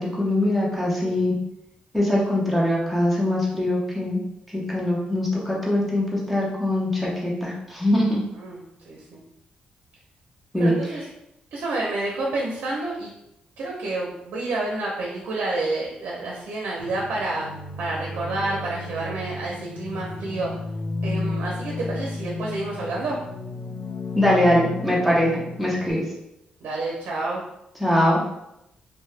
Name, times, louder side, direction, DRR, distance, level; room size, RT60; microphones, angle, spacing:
voice 1, 0.0-1.3 1.9-4.2 4.5-8.2 10.5-10.7 24.1-26.0 27.8-28.2, left 1 dB, ahead, -5 dB, 0.7 m, -22 dB
voice 2, 8.4-9.2 10.6-11.0 11.5-13.1 13.6-17.5 17.8-20.5 21.0-23.2 26.6-27.4, right 2 dB, 85° right, -2 dB, 0.5 m, -29 dB
sound 1, 16.8-25.9, left 2 dB, 75° left, 0.5 m, -33 dB
2.8 x 2.1 x 3.2 m, 0.85 s
cardioid pair, 110°, 3 cm